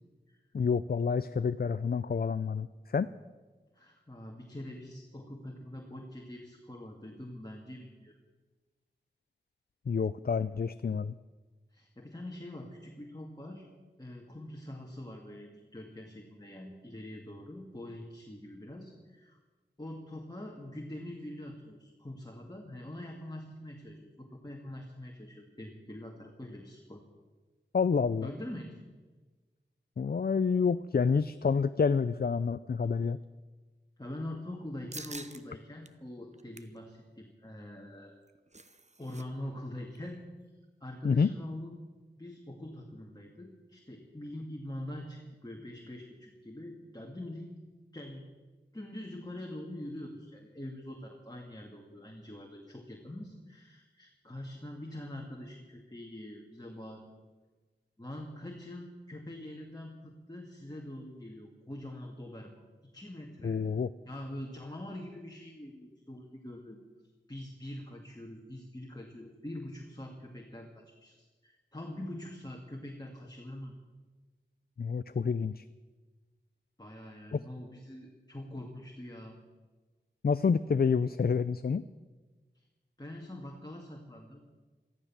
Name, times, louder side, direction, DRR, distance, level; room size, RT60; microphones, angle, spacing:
voice 1, 0.5-3.1 9.9-11.1 27.7-28.3 30.0-33.2 41.0-41.3 63.4-63.9 74.8-75.6 77.3-77.4 80.2-81.8, left 5 dB, 55° left, 14 dB, 0.4 m, -28 dB
voice 2, 3.7-8.1 11.7-13.7 14.0-19.4 19.8-27.0 28.2-28.8 34.0-38.2 39.0-40.2 40.8-41.8 42.2-47.5 47.9-48.3 48.7-57.2 58.0-62.6 62.9-63.6 64.1-66.8 67.3-73.7 76.8-79.4 82.5-82.6 83.0-84.5, left 1 dB, 20° left, 0 dB, 2.2 m, -44 dB
sound 1, 34.9-35.4 35.8-35.9 36.3-36.8 38.1-39.2 39.5-39.6 40.0-40.2, right 2 dB, 40° right, 1.0 m, -47 dB
14.0 x 13.5 x 7.3 m, 1.3 s
wide cardioid pair, 45°, 19 cm